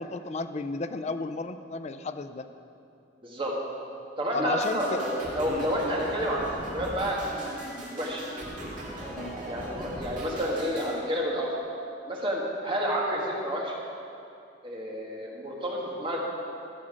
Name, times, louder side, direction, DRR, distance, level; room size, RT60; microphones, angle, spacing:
voice 1, 0.0-2.5 4.3-5.0 5.4-5.7 9.2-9.4, left 3 dB, 35° left, 9 dB, 0.4 m, -33 dB
voice 2, 3.2-3.5 4.2-7.2 7.6-8.2 9.5-11.6 12.1-13.8 14.6-16.2, equal, 30° right, -2 dB, 1.4 m, -30 dB
sound 1, 4.6-11.0, right 1 dB, 45° right, 2.0 m, -39 dB
12.5 x 7.6 x 5.0 m, 2.6 s
head